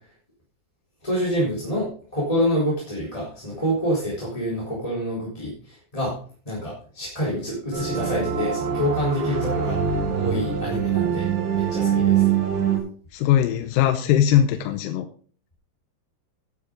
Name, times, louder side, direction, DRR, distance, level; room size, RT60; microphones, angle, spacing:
voice 1, 1.0-6.1 6.5-12.3, equal, 10° left, -5 dB, 3.7 m, -27 dB
sound 1, 7.7-12.8, right 8 dB, 65° right, 3.9 m, -23 dB
voice 2, 13.1-15.1, left 10 dB, 75° left, 8 dB, 2.3 m, -20 dB
12.0 x 9.7 x 3.9 m, 0.43 s
omnidirectional pair, 4.4 m